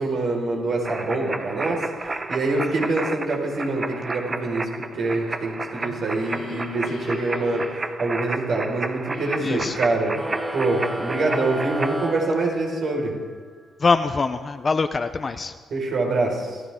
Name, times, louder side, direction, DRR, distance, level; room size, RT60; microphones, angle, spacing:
voice 1, 0.0-10.1 10.5-13.1 15.7-16.6, right 2 dB, 65° right, -1 dB, 4.8 m, -25 dB
sound 1, 0.8-11.9, right 3 dB, 25° right, 0.9 m, -32 dB
sound 2, 5.6-8.6 9.1-10.1, left 4 dB, 65° left, 1.6 m, -39 dB
voice 2, 9.4-9.7 13.8-15.5, left 4 dB, 35° left, 9 dB, 0.6 m, -23 dB
sound 3, 10.1-13.1, right 1 dB, 10° right, 3.1 m, -32 dB
26.0 x 14.5 x 3.7 m, 1.5 s
cardioid pair, 100°, 0 cm